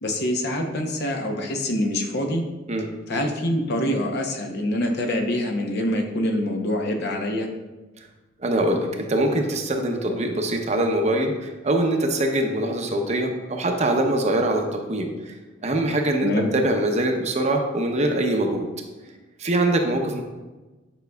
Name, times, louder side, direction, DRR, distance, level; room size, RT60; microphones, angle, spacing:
voice 1, 0.0-2.4 3.1-7.5 16.2-16.5, left 1 dB, 55° left, 2 dB, 0.8 m, -25 dB
voice 2, 8.4-15.3 15.6-18.7 19.4-20.2, right 1 dB, 35° right, 3 dB, 0.7 m, -23 dB
9.0 x 5.3 x 2.3 m, 1.2 s
head